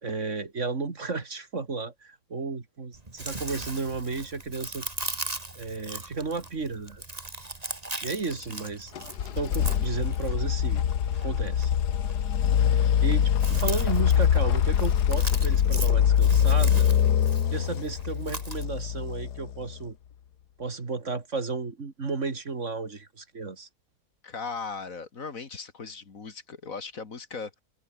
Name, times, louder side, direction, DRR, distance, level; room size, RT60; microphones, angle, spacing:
voice 1, 0.0-4.9 5.6-7.0 8.0-8.9 9.3-10.8 11.2-11.7 12.6-16.8 17.5-20.0 20.6-23.7, right 4 dB, 50° right, 2.5 m, -33 dB
Chewing mastication, 2.9-18.6, right 2 dB, 25° right, 2.8 m, -39 dB
sound 1, 9.0-19.8, left 9 dB, 85° left, 1.7 m, -24 dB
voice 2, 24.2-27.6, left 4 dB, 55° left, 2.3 m, -38 dB
omnidirectional pair, 1.7 m